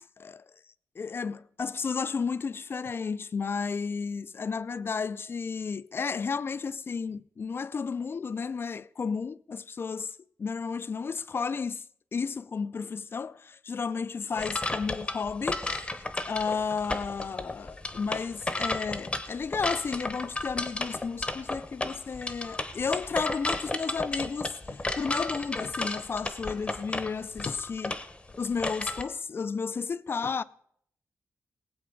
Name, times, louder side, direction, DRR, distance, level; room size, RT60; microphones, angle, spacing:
voice 1, 1.0-11.8 12.1-15.9 16.2-27.9 28.4-30.4, left 5 dB, 40° left, 0.4 m, -33 dB
sound 1, 14.4-29.0, left 2 dB, 15° left, 0.9 m, -33 dB
19.0 x 7.9 x 5.2 m
wide cardioid pair, 115°, 6 cm